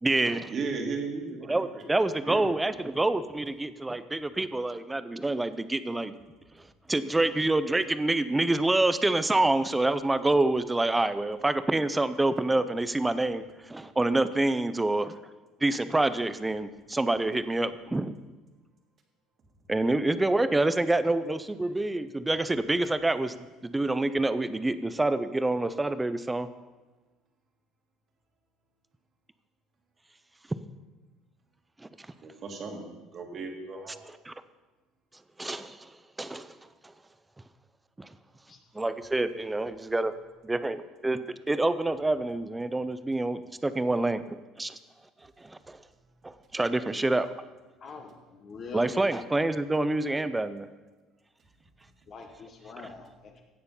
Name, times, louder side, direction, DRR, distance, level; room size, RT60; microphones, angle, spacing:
voice 1, 0.0-0.5 1.5-6.2 6.9-13.4 13.7-15.1 15.6-18.1 19.7-23.3 23.6-26.5 31.8-31.9 34.3-34.4 35.4-35.9 36.2-36.5 38.0-38.1 38.7-40.1 40.4-44.8 45.4-45.8 46.2-47.3 48.7-50.7, right 2 dB, 10° right, 13 dB, 0.5 m, -27 dB
voice 2, 0.5-1.8 2.2-2.5 32.2-34.0, right 4 dB, 35° right, 2 dB, 2.0 m, -35 dB
voice 3, 47.8-49.1 52.1-53.4, left 4 dB, 35° left, 3 dB, 1.2 m, -43 dB
16.5 x 6.8 x 5.5 m, 1.2 s
cardioid pair, 155°, 0 cm